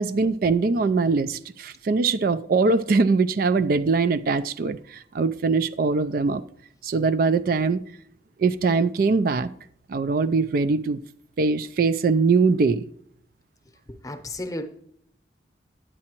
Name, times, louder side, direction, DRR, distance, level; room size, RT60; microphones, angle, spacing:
voice 1, 0.0-6.4 6.8-7.8 8.4-9.5 9.9-11.0 11.4-12.8, right 4 dB, 50° right, 0.3 m, -22 dB
voice 2, 13.9-14.6, left 1 dB, 20° left, 0.8 m, -33 dB
9.7 x 8.4 x 3.0 m
head